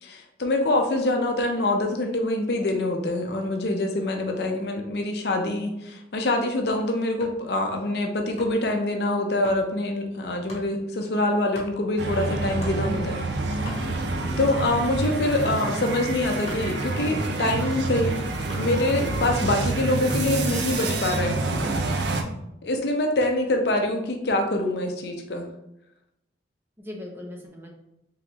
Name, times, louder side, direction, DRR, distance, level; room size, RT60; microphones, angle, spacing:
voice 1, 0.0-13.2 13.6-13.9 14.4-18.3 18.5-21.4 22.6-25.5, left 1 dB, 65° left, 3 dB, 0.6 m, -25 dB
sound 1, 7.2-7.5 8.4-8.7 9.4-9.7 10.5-10.7 11.5-11.8 12.6-12.8 13.3-13.4 13.5-14.1 14.5-14.9 15.4-15.7 16.4-17.2 17.6-19.0 20.1-20.4 21.6-22.3 23.2-23.5, left 1 dB, 40° left, 1.0 m, -42 dB
sound 2, 12.0-22.2, right 2 dB, 75° right, 0.5 m, -27 dB
voice 2, 14.1-14.6 26.8-27.7, left 1 dB, 10° right, 0 dB, 0.6 m, -40 dB
3.7 x 3.4 x 3.0 m, 0.84 s
head